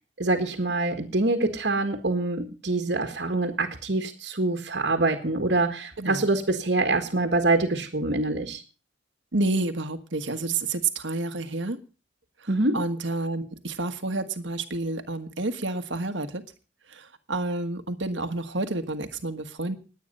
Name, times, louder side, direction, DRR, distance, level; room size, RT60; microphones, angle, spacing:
voice 1, 0.2-8.6 12.5-12.8, right 2 dB, 65° right, 4 dB, 1.8 m, -25 dB
voice 2, 9.3-11.8 12.4-12.5 12.7-16.4 16.9-19.8, right 2 dB, 85° right, 8 dB, 1.5 m, -29 dB
20.0 x 9.1 x 5.4 m, 0.36 s
head